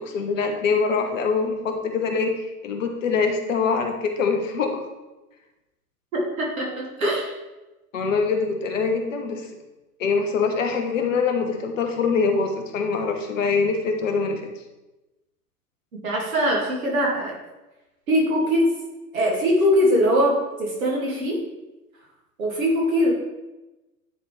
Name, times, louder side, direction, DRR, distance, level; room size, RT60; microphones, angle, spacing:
voice 1, 0.0-4.8 7.9-9.5 10.0-14.4, left 5 dB, 55° left, 4 dB, 1.1 m, -24 dB
voice 2, 6.1-7.3 15.9-17.4 18.1-18.7 19.1-21.4 22.4-23.1, equal, 60° right, -2 dB, 2.4 m, -22 dB
9.9 x 4.2 x 3.2 m, 1.0 s
figure-of-eight pair, 105°, 46 cm